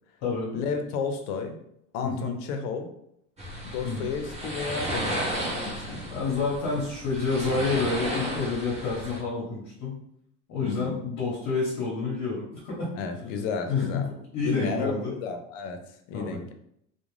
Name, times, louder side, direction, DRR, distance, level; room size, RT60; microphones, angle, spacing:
voice 1, 0.5-1.6 1.9-2.9 3.6-5.2 5.5-6.0 10.6-11.0 13.0-14.1 14.4-15.8 16.1-16.5, left 5 dB, 75° left, 7 dB, 0.6 m, -32 dB
sound 1, 3.4-9.2, right 1 dB, 15° right, 0.6 m, -33 dB
voice 2, 6.1-10.0 10.5-12.9 13.7-15.1 16.1-16.4, left 4 dB, 50° left, -4 dB, 0.9 m, -29 dB
2.4 x 2.2 x 3.1 m, 0.73 s
supercardioid pair, 120°, 39 cm